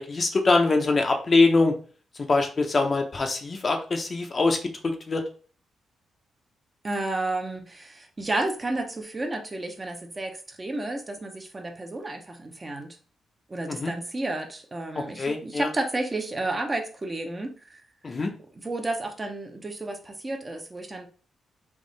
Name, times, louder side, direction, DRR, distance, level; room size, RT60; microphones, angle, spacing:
voice 1, 0.0-1.7 2.3-4.6 4.8-5.2 13.7-13.9 15.0-15.7 18.0-18.3, left 3 dB, 30° left, 4 dB, 0.6 m, -23 dB
voice 2, 6.8-13.0 13.5-17.8 18.5-21.1, right 2 dB, 20° right, 4 dB, 0.7 m, -31 dB
3.6 x 2.9 x 3.9 m, 0.39 s
cardioid pair, 140°, 0 cm